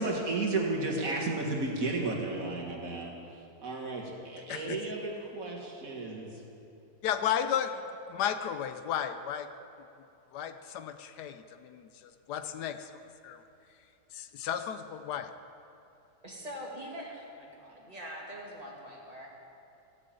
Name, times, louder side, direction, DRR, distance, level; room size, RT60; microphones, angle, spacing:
voice 1, 0.0-3.1 3.6-6.4, right 2 dB, 55° right, -2 dB, 2.0 m, -33 dB
voice 2, 4.5-4.8 7.0-7.8 8.1-9.5 10.3-11.8 12.3-12.9 13.2-13.4 14.1-15.3, left 9 dB, 75° left, 9 dB, 1.2 m, -33 dB
voice 3, 16.2-19.3, equal, 20° right, -3 dB, 2.2 m, -43 dB
14.5 x 6.8 x 8.7 m, 2.7 s
omnidirectional pair, 1.8 m